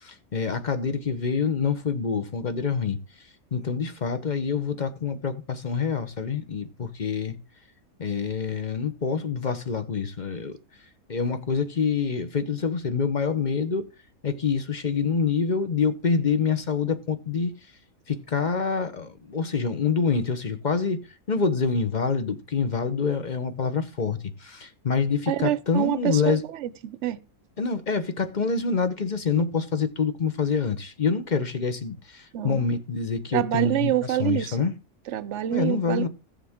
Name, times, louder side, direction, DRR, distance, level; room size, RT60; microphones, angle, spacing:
voice 1, 0.0-3.0 3.5-7.4 8.0-10.6 11.1-13.9 14.2-17.5 18.1-21.0 21.3-26.4 27.6-34.7 35.5-36.1, left 5 dB, 35° left, 1.0 m, -26 dB
voice 2, 25.3-27.2 32.3-32.7 33.3-34.6 35.1-36.1, right 13 dB, 60° right, 0.9 m, -27 dB
15.5 x 7.2 x 3.6 m
omnidirectional pair, 1.6 m